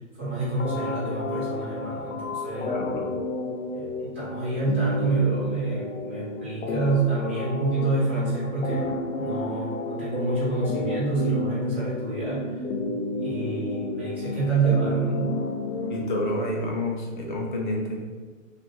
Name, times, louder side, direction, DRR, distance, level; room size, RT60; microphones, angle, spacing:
voice 1, 0.2-2.7 3.7-12.5 13.2-15.4, right 4 dB, 10° right, -9 dB, 0.4 m, -27 dB
sound 1, 0.6-16.6, left 2 dB, 85° left, 0.5 m, -31 dB
voice 2, 2.6-3.1 15.9-18.1, left 1 dB, 40° left, -1 dB, 0.6 m, -29 dB
2.9 x 2.5 x 3.0 m, 1.4 s
hypercardioid pair, 145°, 40 cm